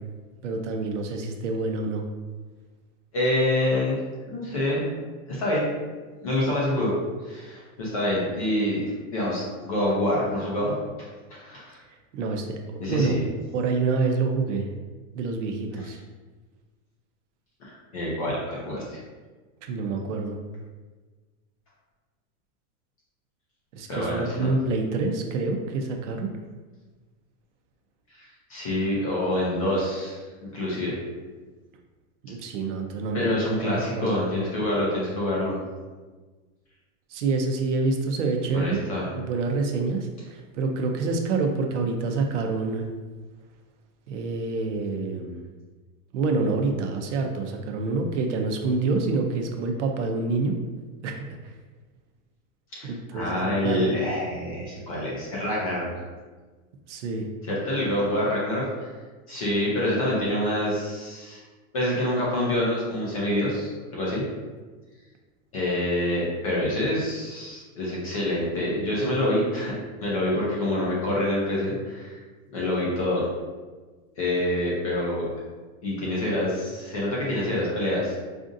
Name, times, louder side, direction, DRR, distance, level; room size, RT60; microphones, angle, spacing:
voice 1, 0.4-2.0 12.1-13.1 13.5-14.7 15.1-16.0 19.6-20.4 23.7-26.3 32.2-34.1 37.1-38.8 39.1-42.9 44.1-45.4 46.1-50.6 51.0-51.5 52.8-53.9 56.9-57.3, right 3 dB, 60° right, 3 dB, 0.5 m, -27 dB
voice 2, 3.1-4.0 4.3-5.0 5.3-5.7 6.2-7.0 7.2-8.8 9.1-10.8 11.3-11.8 12.8-13.2 15.7-15.9 17.6-19.0 23.9-24.5 28.1-31.0 33.1-35.6 38.5-39.1 52.7-55.9 57.5-58.9 59.3-61.4 61.7-64.3 65.5-72.2 72.5-73.2 74.2-75.2 75.8-78.2, left 1 dB, 25° left, -5 dB, 0.4 m, -26 dB
4.9 x 2.5 x 2.5 m, 1.3 s
supercardioid pair, 175°, 42 cm